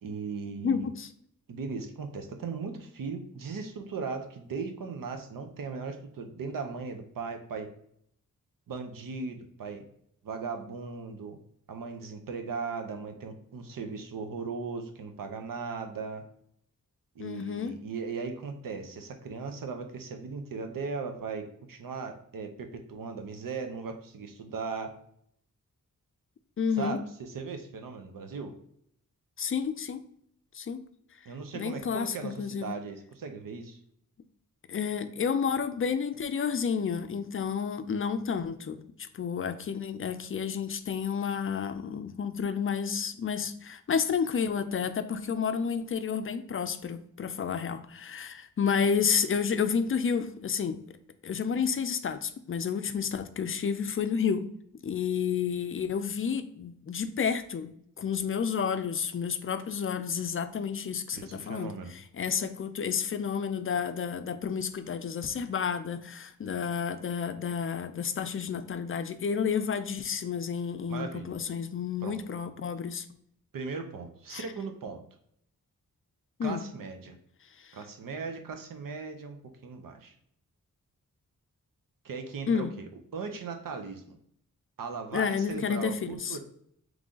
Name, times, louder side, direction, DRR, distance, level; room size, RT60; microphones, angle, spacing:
voice 1, 0.0-0.9 1.5-7.7 8.7-9.8 10.2-11.4 11.7-16.2 17.2-24.9 26.8-28.5 31.3-33.8 61.1-61.9 70.9-71.3 72.0-72.2 73.5-75.0 76.4-77.2 77.7-80.1 82.0-84.2 84.8-86.4, right 4 dB, 85° right, 6 dB, 0.7 m, -38 dB
voice 2, 0.6-1.1 17.2-17.8 26.6-27.0 29.4-30.0 30.5-30.8 31.5-32.7 34.7-38.8 39.1-50.8 51.2-54.5 54.8-57.7 58.0-73.1 74.3-74.4 76.4-76.6 77.6-77.7 82.5-82.7 85.1-86.4, left 6 dB, 40° left, 10 dB, 0.4 m, -30 dB
3.7 x 3.2 x 3.7 m, 0.69 s
wide cardioid pair, 115°, 32 cm